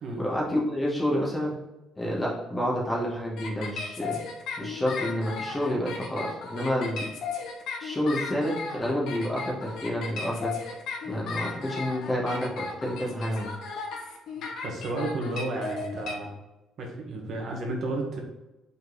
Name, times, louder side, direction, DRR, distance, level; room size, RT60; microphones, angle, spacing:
voice 1, 0.2-1.5 2.0-4.2 4.6-7.1 7.8-10.7 11.0-13.5, equal, 15° left, -4 dB, 1.9 m, -29 dB
sound 1, 3.4-16.1, left 4 dB, 65° left, 1.5 m, -35 dB
voice 2, 14.6-16.3 16.8-18.2, right 2 dB, 50° right, 0 dB, 1.7 m, -32 dB
5.6 x 4.5 x 4.1 m, 1.0 s
cardioid pair, 140°, 0 cm